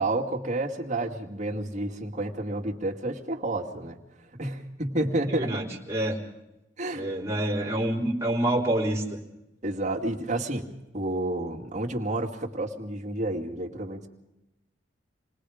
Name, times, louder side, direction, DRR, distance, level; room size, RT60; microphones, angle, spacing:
voice 1, 0.0-4.0 4.4-5.6 6.8-7.1 9.6-10.7 10.9-14.1, right 2 dB, 40° right, 1 dB, 2.3 m, -30 dB
voice 2, 5.4-6.2 6.9-9.2, right 1 dB, 15° right, -2 dB, 3.6 m, -27 dB
28.5 x 19.5 x 5.0 m, 0.96 s
head